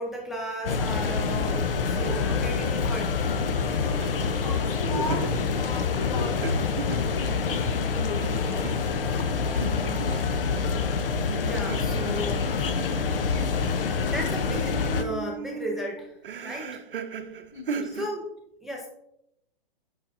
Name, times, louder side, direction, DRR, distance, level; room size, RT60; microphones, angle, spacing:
voice 1, 0.0-3.2 11.4-12.4 14.1-16.2 16.4-16.8 17.9-18.2 18.6-18.9, equal, ahead, -1 dB, 0.5 m, -34 dB
sound 1, 0.7-15.0, left 5 dB, 70° left, 0.7 m, -26 dB
sound 2, 1.5-2.6 2.9-3.0 3.8-7.8 8.2-10.6 11.3-14.3 14.5-18.1, right 5 dB, 65° right, 0.7 m, -38 dB
voice 2, 4.4-8.7 17.5-17.9, left 4 dB, 55° left, 4 dB, 1.4 m, -38 dB
8.7 x 5.8 x 2.7 m, 0.80 s
hypercardioid pair, 120°, 29 cm